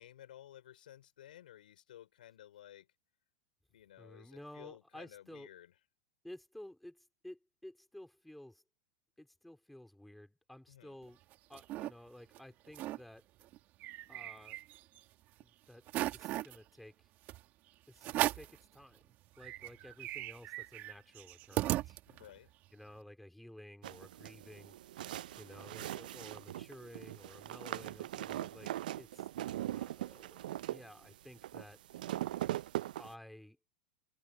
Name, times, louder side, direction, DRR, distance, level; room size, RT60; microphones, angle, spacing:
voice 1, 0.0-2.9 3.7-5.7 10.7-11.0 22.1-22.5, left 12 dB, 85° left, 4.2 m, -55 dB
voice 2, 4.0-5.5 6.2-8.6 9.2-11.2 11.5-13.3 14.1-14.6 15.4-17.1 17.9-19.0 19.4-22.0 22.7-24.8 25.4-28.7 29.0-29.3 29.7-31.8 33.0-33.6, left 1 dB, ahead, 3.8 m, -53 dB
sound 1, 11.1-11.9 12.3-12.4 12.7-13.0 13.4-15.0 15.4-15.5 15.9-16.6 17.3-17.4 18.0-18.6 19.1-19.2 19.4-22.4, right 16 dB, 40° right, 1.8 m, -37 dB
sound 2, 23.8-33.1, right 13 dB, 75° right, 0.4 m, -41 dB
open air
supercardioid pair, 135°, 5 cm